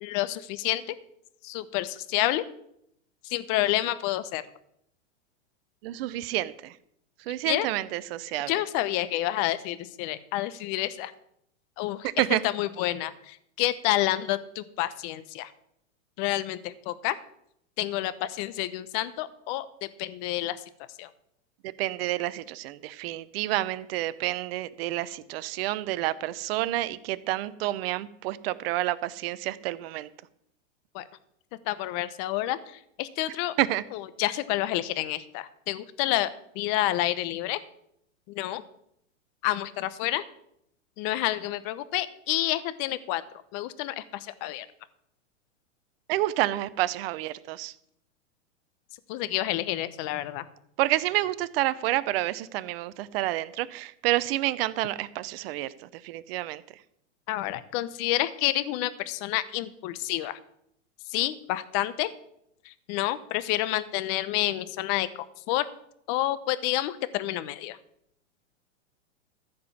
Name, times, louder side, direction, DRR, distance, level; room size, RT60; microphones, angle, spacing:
voice 1, 0.0-0.9 1.4-2.4 3.2-4.4 7.4-7.7 8.5-11.1 11.8-15.5 16.2-17.2 17.8-19.7 20.0-20.6 21.0-21.1 30.9-31.0 31.6-33.5 33.9-36.3 36.5-37.6 38.3-38.6 39.4-40.2 41.0-43.2 43.5-44.7 49.1-50.4 57.3-60.4 61.1-62.1 62.6-65.7 66.1-67.8, left 15 dB, 40° left, 14 dB, 0.9 m, -29 dB
voice 2, 5.8-6.7 7.3-8.5 12.2-12.4 21.8-30.1 33.6-33.8 46.1-47.7 50.8-55.7 56.0-56.6, right 16 dB, 50° right, 16 dB, 0.7 m, -29 dB
14.0 x 5.2 x 7.3 m, 0.75 s
hypercardioid pair, 130°, 38 cm